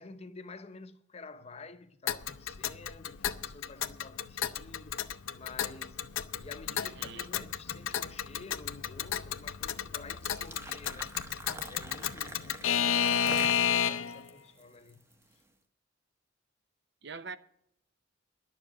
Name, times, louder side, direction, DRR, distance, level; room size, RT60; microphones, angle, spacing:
voice 1, 0.0-6.1 6.4-11.2 11.7-15.0, left 3 dB, 30° left, 0.7 m, -50 dB
Alarm / Clock, 2.1-14.2, left 8 dB, 80° left, 0.6 m, -32 dB
voice 2, 6.8-7.3 12.9-13.2 17.0-17.4, right 5 dB, 60° right, 0.7 m, -45 dB
sound 1, 10.1-15.3, right 2 dB, 15° right, 0.9 m, -46 dB
11.0 x 7.1 x 9.0 m
head